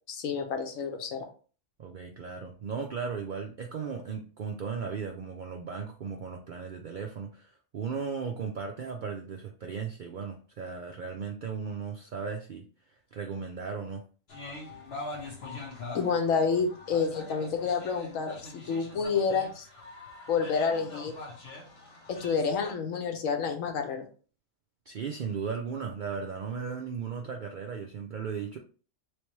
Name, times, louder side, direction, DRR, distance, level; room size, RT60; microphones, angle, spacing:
voice 1, 0.1-1.3 15.9-19.7 20.3-21.2 22.1-24.1, left 5 dB, 80° left, 5 dB, 1.1 m, -29 dB
voice 2, 1.8-12.6 12.9-14.0 24.9-28.6, right 6 dB, 70° right, 3 dB, 0.4 m, -36 dB
sound 1, 14.3-22.7, left 2 dB, 55° left, 1.2 m, -43 dB
3.4 x 3.3 x 3.0 m, 0.39 s
omnidirectional pair, 1.4 m